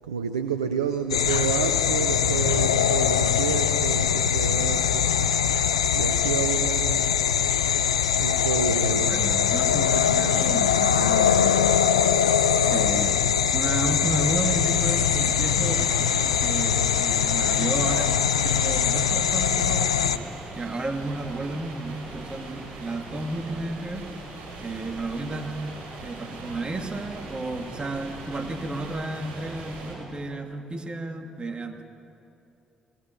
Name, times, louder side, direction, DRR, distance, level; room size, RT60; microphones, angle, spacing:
voice 1, 0.1-5.1 5.5-5.7 5.9-7.2 8.2-9.2 12.0-12.5, right 7 dB, 90° right, 8 dB, 0.6 m, -30 dB
sound 1, 1.1-20.2, left 8 dB, 90° left, 0.5 m, -22 dB
voice 2, 8.9-12.1 12.7-13.2 13.5-16.1 16.4-18.2 18.4-20.2 20.6-24.1 24.6-25.6 26.0-31.8, right 2 dB, 30° right, 4 dB, 2.6 m, -32 dB
sound 2, 14.3-29.9, right 3 dB, 65° right, 6.1 m, -40 dB
21.5 x 19.0 x 8.3 m, 2.9 s
hypercardioid pair, 45°, 3 cm